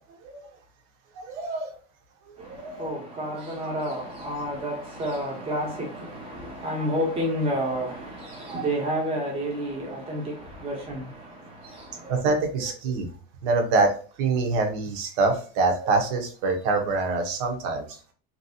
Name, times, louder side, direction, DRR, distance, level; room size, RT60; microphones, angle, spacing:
voice 1, 1.2-1.7 2.4-2.9 3.6-3.7 6.8-6.9 8.5-8.6 12.0-13.1 13.4-13.9 14.2-17.8, right 3 dB, 55° right, 0.8 m, -25 dB
voice 2, 2.4-12.2, equal, 20° right, 0.9 m, -30 dB
2.9 x 2.7 x 2.7 m
cardioid pair, 170°, 31 cm